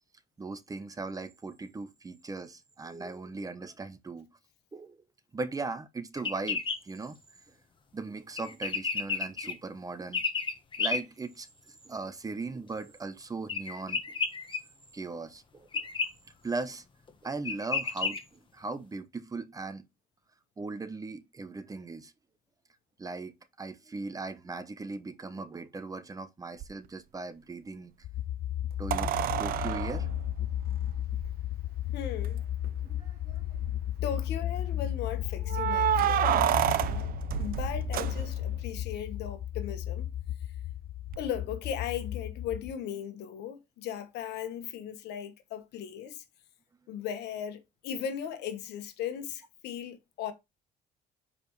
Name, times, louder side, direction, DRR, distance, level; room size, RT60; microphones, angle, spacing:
voice 1, 0.4-4.3 4.7-5.0 5.3-7.1 7.9-10.2 10.8-14.0 14.9-15.7 16.4-16.8 17.2-19.8 20.6-22.1 23.0-27.9 28.8-29.1 29.4-30.1 32.8-33.4, right 3 dB, 20° right, 0.8 m, -38 dB
sound 1, 6.2-6.8 8.4-9.5 10.1-11.0 13.5-14.6 15.7-16.1 17.1-17.2 17.5-18.2, left 5 dB, 30° left, 1.3 m, -31 dB
sound 2, 26.6-26.7 28.9-31.3 32.2-32.3 32.6-32.7 33.3-33.8 35.5-38.6 41.1-41.2, right 11 dB, 60° right, 0.5 m, -29 dB
sound 3, 28.0-42.7, left 12 dB, 55° left, 0.6 m, -34 dB
voice 2, 31.9-32.4 34.0-37.1 37.4-40.1 41.2-46.2 46.9-50.3, left 9 dB, 80° left, 1.3 m, -37 dB
6.8 x 4.9 x 3.2 m
cardioid pair, 110°, 17 cm